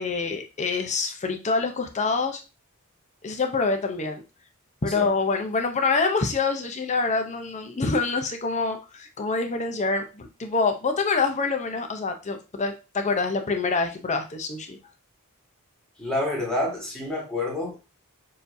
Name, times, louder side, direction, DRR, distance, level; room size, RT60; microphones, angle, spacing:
voice 1, 0.0-2.4 3.2-4.2 4.8-14.8, left 4 dB, 30° left, 5 dB, 0.6 m, -26 dB
voice 2, 16.0-17.8, left 2 dB, 5° left, -3 dB, 1.6 m, -28 dB
6.6 x 2.7 x 2.6 m, 0.30 s
head